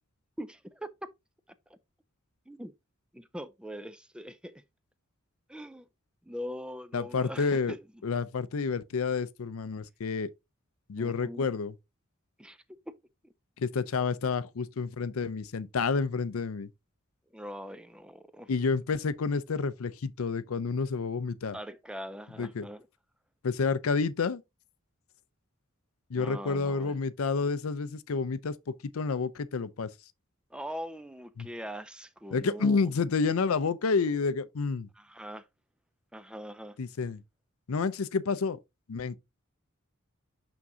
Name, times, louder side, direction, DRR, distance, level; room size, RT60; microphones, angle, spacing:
voice 1, 0.4-1.1 1.7-1.8 2.5-2.7 3.1-4.6 5.5-5.9 6.2-7.8 11.0-11.5 12.4-13.0 13.2-13.3 17.3-18.5 21.5-22.9 26.1-27.0 30.5-32.9 35.0-35.5 36.1-36.8, equal, 5° right, 0.4 m, -42 dB
voice 2, 6.9-7.7 8.0-10.3 10.9-11.7 13.6-16.7 18.5-21.6 22.4-22.7 23.4-24.4 26.1-29.9 31.4-31.5 32.3-34.9 36.8-37.2 37.7-38.6 38.9-39.2, left 4 dB, 75° left, 0.5 m, -29 dB
6.0 x 6.0 x 2.7 m
head